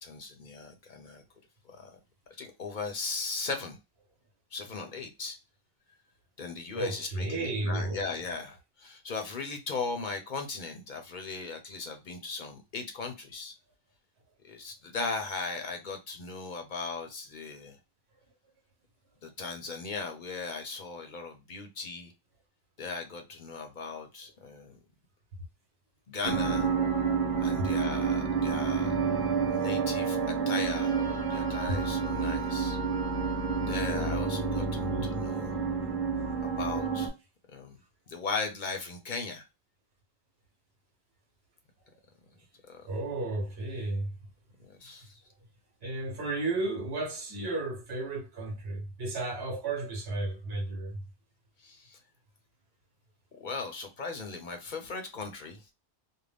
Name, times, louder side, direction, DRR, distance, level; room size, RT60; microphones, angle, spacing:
voice 1, 0.0-1.2 1.7-2.0 2.4-3.8 4.5-5.4 6.4-13.5 14.4-17.8 19.2-22.1 22.8-24.8 26.1-26.7 27.4-28.9 29.5-32.8 33.7-35.6 36.4-37.1 37.5-37.8 38.1-39.4 42.7-42.8 44.7-45.2 51.6-52.0 53.4-55.6, left 4 dB, 50° left, 0.7 m, -38 dB
voice 2, 6.7-8.1 27.6-27.7 31.7-31.8 34.8-35.3 42.8-44.1 45.8-51.0, right 2 dB, 75° right, 1.1 m, -33 dB
sound 1, 26.2-37.1, right 5 dB, 50° right, 0.9 m, -29 dB
2.5 x 2.1 x 3.3 m
omnidirectional pair, 1.1 m